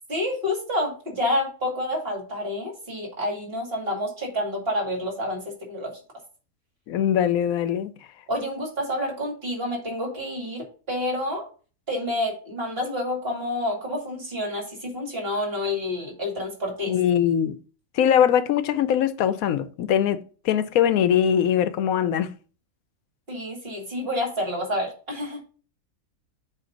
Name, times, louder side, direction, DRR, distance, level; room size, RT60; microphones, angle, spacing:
voice 1, 0.1-5.9 8.3-11.4 11.9-16.9 23.3-25.4, left 1 dB, 40° right, 2.5 m, -28 dB
voice 2, 6.9-7.9 16.9-17.5 17.9-22.3, left 9 dB, 80° left, 1.0 m, -22 dB
7.7 x 3.2 x 5.1 m
omnidirectional pair, 1.5 m